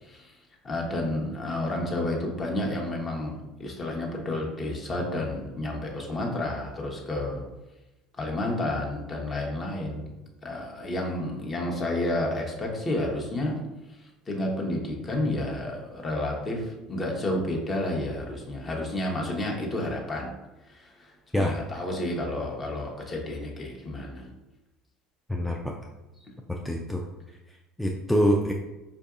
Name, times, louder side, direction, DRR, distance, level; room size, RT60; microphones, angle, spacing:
voice 1, 0.0-0.3 0.6-3.3 3.6-7.4 8.2-10.1 10.4-13.5 14.0-20.3 20.7-24.3, left 1 dB, 30° left, 0 dB, 0.9 m, -30 dB
voice 2, 25.3-25.8 26.5-27.0 27.8-28.5, equal, 5° left, 0 dB, 0.4 m, -25 dB
4.6 x 2.6 x 2.4 m, 1.0 s
hypercardioid pair, 85°, 0 cm